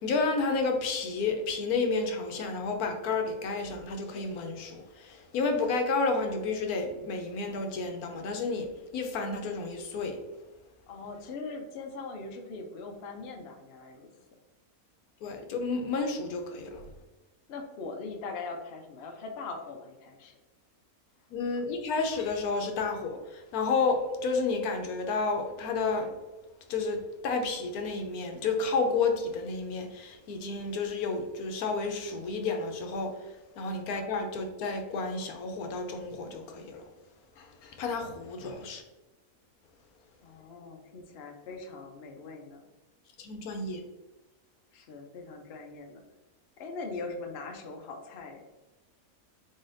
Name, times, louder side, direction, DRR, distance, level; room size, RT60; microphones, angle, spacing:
voice 1, 0.0-8.7 8.9-10.2 15.2-16.9 21.3-26.1 26.7-33.1 33.6-36.8 37.4-38.8 43.2-43.8, left 4 dB, 80° left, 4 dB, 1.2 m, -31 dB
voice 2, 10.9-14.1 17.5-20.4 40.2-42.6 44.7-46.0 46.6-48.4, left 3 dB, 55° left, 3 dB, 0.7 m, -41 dB
4.1 x 4.0 x 2.5 m, 1.1 s
omnidirectional pair, 1.6 m